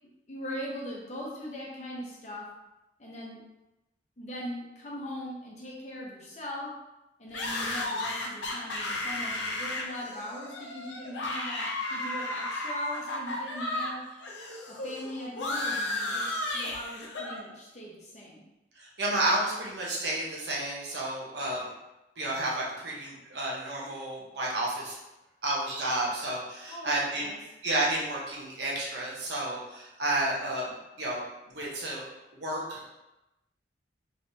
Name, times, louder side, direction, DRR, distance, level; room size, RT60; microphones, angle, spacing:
voice 1, 0.3-2.5 3.0-3.4 4.2-6.7 7.2-14.0 14.7-18.4 26.7-27.4, left 1 dB, 40° left, -4 dB, 0.8 m, -40 dB
sound 1, 7.3-13.9 14.2-17.4, left 1 dB, 80° left, 0.6 m, -34 dB
voice 2, 18.8-21.7 22.2-25.0 25.4-27.3 27.6-31.2 31.5-32.0 32.3-32.9, right 1 dB, 70° right, -4 dB, 0.9 m, -31 dB
3.2 x 3.2 x 2.7 m, 0.95 s
head